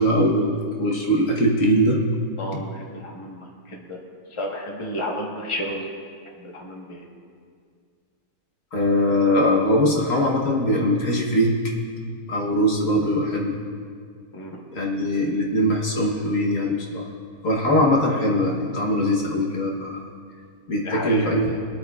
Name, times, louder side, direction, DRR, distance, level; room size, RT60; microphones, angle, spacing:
voice 1, 0.0-2.0 8.7-11.6 12.3-13.6 14.7-17.1 17.4-20.0 20.7-21.6, equal, 60° left, -2 dB, 1.5 m, -21 dB
voice 2, 2.4-4.0 4.3-5.9 6.4-7.0 14.3-14.6 20.8-21.4, left 1 dB, 20° left, -1 dB, 1.2 m, -32 dB
22.0 x 8.7 x 2.4 m, 2.1 s
omnidirectional pair, 1.6 m